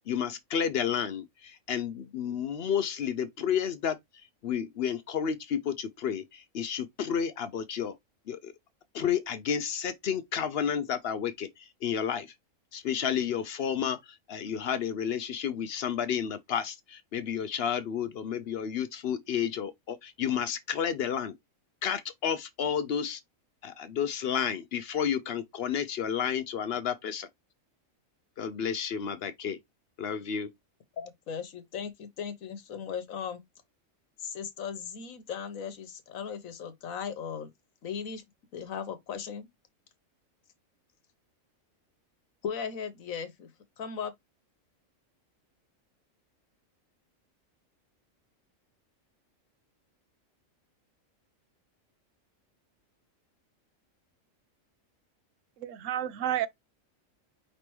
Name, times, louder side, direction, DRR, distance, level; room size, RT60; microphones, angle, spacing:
voice 1, 0.1-4.0 4.4-7.9 8.3-8.5 8.9-12.3 12.7-14.0 14.3-21.4 21.8-23.2 23.6-27.3 28.4-29.6 30.0-30.5, left 8 dB, 60° left, 0.7 m, -31 dB
voice 2, 31.0-33.4 34.2-37.5 37.8-38.2 38.5-39.5 42.4-43.5 43.8-44.1, left 7 dB, 85° left, 1.3 m, -37 dB
voice 3, 55.6-56.5, right 11 dB, 75° right, 0.9 m, -30 dB
5.1 x 3.3 x 2.9 m
omnidirectional pair, 1.4 m